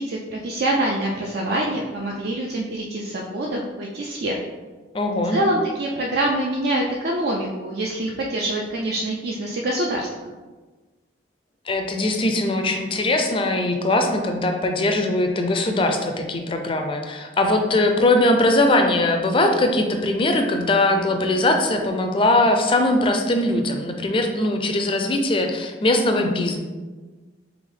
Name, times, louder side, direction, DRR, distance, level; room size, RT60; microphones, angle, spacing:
voice 1, 0.0-4.4 5.3-10.1, right 1 dB, 55° right, -1 dB, 0.4 m, -25 dB
voice 2, 4.9-5.4 11.7-26.6, left 2 dB, 30° left, 4 dB, 0.4 m, -21 dB
3.4 x 3.4 x 3.7 m, 1.3 s
head